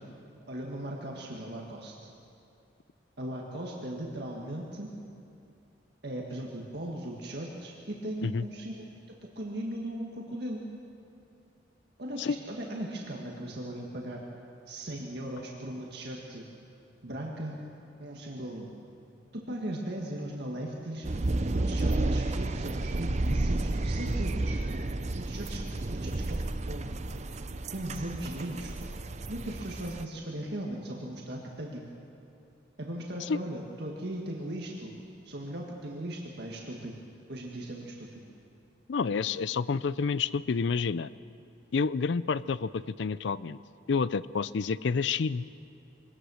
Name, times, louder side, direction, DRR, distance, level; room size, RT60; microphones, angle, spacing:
voice 1, 0.5-1.9 3.2-4.9 6.0-10.6 12.0-14.2 14.7-16.5 17.0-17.6 18.0-18.7 19.3-21.1 21.5-24.6 25.1-27.1 27.7-29.0 29.3-31.9 32.8-34.9 35.2-36.9 37.3-38.2, right 1 dB, 60° right, -1 dB, 1.8 m, -38 dB
sound 1, 21.0-30.0, right 2 dB, 35° right, 0.6 m, -31 dB
voice 2, 38.9-41.1 41.7-43.6 43.9-45.4, left 5 dB, 70° left, 17 dB, 0.5 m, -29 dB
23.0 x 18.0 x 6.4 m, 2.6 s
head